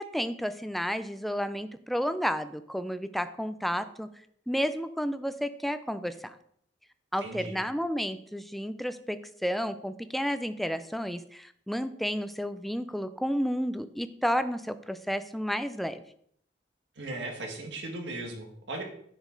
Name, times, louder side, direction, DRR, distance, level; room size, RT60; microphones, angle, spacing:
voice 1, 0.0-4.1 4.5-6.4 7.1-16.0, equal, ahead, 11 dB, 0.4 m, -31 dB
voice 2, 7.2-7.6 17.0-18.8, right 2 dB, 75° right, 1 dB, 1.8 m, -37 dB
10.0 x 5.1 x 3.9 m, 0.67 s
head